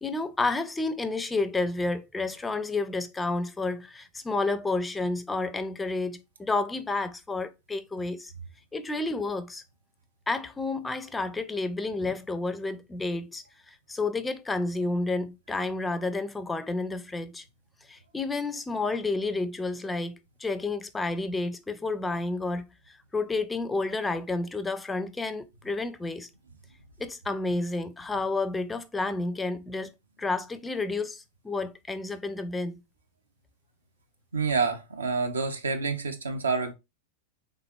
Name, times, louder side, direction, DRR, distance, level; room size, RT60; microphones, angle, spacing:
voice 1, 0.0-8.3 8.7-9.6 10.3-17.4 17.9-26.3 27.0-29.9 30.2-32.8, left 3 dB, 10° left, 0.4 m, -30 dB
voice 2, 34.3-36.7, right 4 dB, 75° right, 0.6 m, -28 dB
3.6 x 3.3 x 2.2 m
figure-of-eight pair, 90°, 0 cm